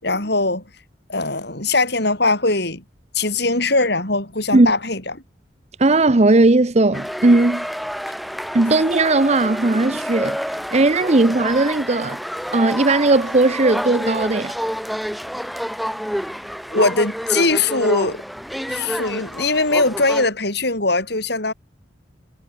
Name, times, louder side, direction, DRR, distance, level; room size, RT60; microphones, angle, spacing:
voice 1, 0.0-0.6 1.1-2.8 3.1-5.0 16.7-18.2 18.7-21.5, left 3 dB, 60° left, 7.4 m, -20 dB
voice 2, 5.8-7.7 8.5-10.4 10.7-12.2 12.5-14.5, right 2 dB, 35° right, 0.8 m, -17 dB
sound 1, 6.9-20.3, equal, ahead, 6.2 m, -28 dB
head